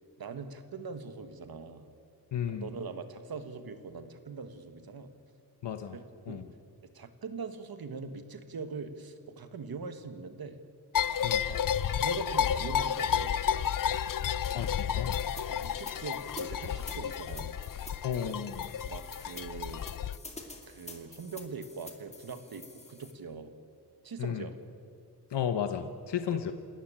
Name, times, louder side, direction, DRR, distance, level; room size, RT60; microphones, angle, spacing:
voice 1, 0.2-1.9 2.5-5.1 5.9-6.4 6.9-10.6 11.4-11.6 11.9-13.4 15.5-17.6 18.1-18.4 18.8-19.8 20.7-23.5 24.0-24.5 26.3-26.4, right 5 dB, 60° right, 9 dB, 1.6 m, -42 dB
voice 2, 2.3-2.7 5.6-6.0 6.3-6.5 11.2-11.4 14.5-15.2 18.0-18.6 24.2-24.5 25.3-26.5, left 8 dB, 85° left, 9 dB, 1.1 m, -33 dB
sound 1, 10.9-20.2, left 8 dB, 55° left, 0.5 m, -31 dB
sound 2, 15.1-23.1, left 2 dB, 15° left, 2.3 m, -48 dB
28.0 x 13.5 x 8.8 m, 2.3 s
wide cardioid pair, 175°, 41 cm